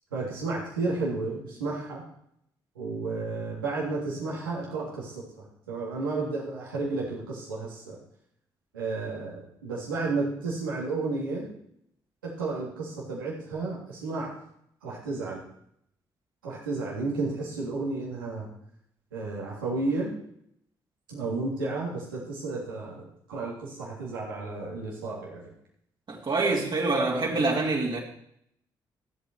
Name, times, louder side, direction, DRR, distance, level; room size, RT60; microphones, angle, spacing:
voice 1, 0.1-2.1 2.8-8.0 8.7-11.5 12.2-14.4 14.8-15.4 16.4-18.5 19.1-20.1 21.1-25.5, right 3 dB, 90° right, -5 dB, 3.3 m, -32 dB
voice 2, 26.1-28.0, right 3 dB, 45° right, -2 dB, 3.0 m, -26 dB
15.0 x 8.3 x 4.6 m, 0.73 s
hypercardioid pair, 45°, 11 cm